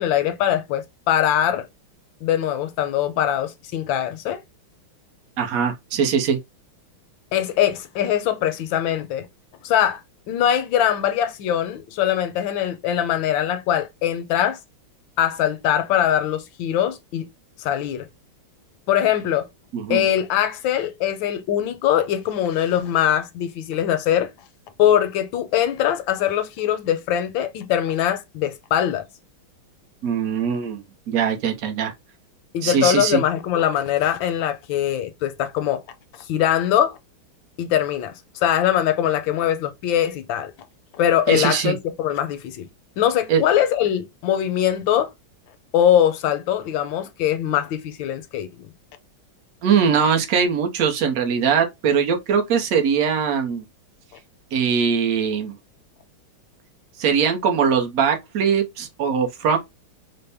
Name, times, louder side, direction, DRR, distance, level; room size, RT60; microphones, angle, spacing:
voice 1, 0.0-1.7 2.2-4.4 7.3-9.3 9.6-10.0 10.3-14.6 15.2-17.3 17.6-18.1 18.9-19.5 19.9-24.3 24.8-29.0 32.5-35.8 36.3-37.0 37.6-38.1 38.4-40.5 40.9-42.7 43.0-45.1 45.7-48.7, left 10 dB, 75° left, 1.3 m, -22 dB
voice 2, 5.4-6.4 19.7-20.1 30.0-31.9 32.6-33.2 41.3-41.7 43.3-43.4 49.6-53.6 54.5-55.5 57.0-59.6, right 7 dB, 60° right, 1.0 m, -21 dB
4.1 x 2.1 x 3.4 m
omnidirectional pair, 2.3 m